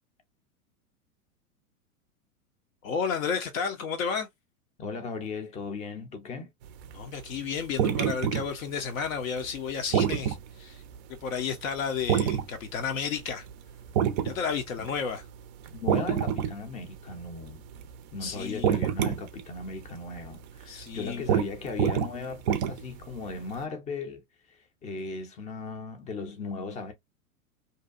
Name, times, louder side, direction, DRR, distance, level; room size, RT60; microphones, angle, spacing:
voice 1, 2.8-4.3 6.9-10.8 11.1-13.5 14.2-15.2 18.2-18.8 20.7-21.3, left 6 dB, 65° left, 0.7 m, -32 dB
voice 2, 4.8-6.5 15.7-17.6 18.1-24.2 24.5-26.9, left 4 dB, 15° left, 0.5 m, -37 dB
sound 1, 6.8-10.5 10.9-11.0 12.1-12.5 12.9-13.0 13.2-13.5 13.9-15.3 15.6-16.6 16.9-18.0 18.3-19.4 19.7-19.9 20.2-20.3 20.8-20.9 21.3-21.5 21.8-23.0 23.6-23.7, right 9 dB, 35° right, 0.4 m, -26 dB
2.7 x 2.2 x 2.4 m
figure-of-eight pair, 100°, 43 cm